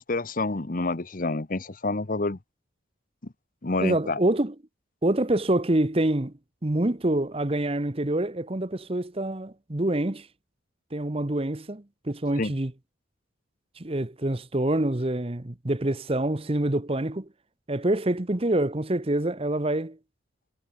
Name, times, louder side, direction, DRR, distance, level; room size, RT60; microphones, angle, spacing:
voice 1, 0.0-2.4 3.2-3.3 3.6-4.2 12.4-12.5, left 2 dB, 45° left, 0.9 m, -28 dB
voice 2, 3.8-4.5 5.0-6.3 6.6-10.3 10.9-12.7 13.8-17.3 17.7-20.0, right 1 dB, 30° right, 1.0 m, -26 dB
head